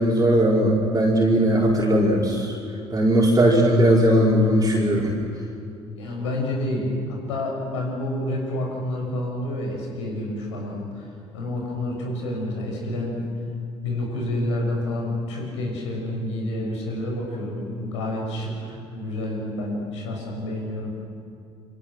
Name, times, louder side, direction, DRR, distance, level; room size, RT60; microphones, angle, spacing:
voice 1, 0.0-2.5 2.9-5.1, equal, 25° right, -4 dB, 4.7 m, -18 dB
voice 2, 5.9-11.1 11.3-13.2 13.8-20.9, left 1 dB, 80° left, 0 dB, 6.5 m, -29 dB
28.0 x 23.5 x 6.4 m, 2.4 s
hypercardioid pair, 60°, 15 cm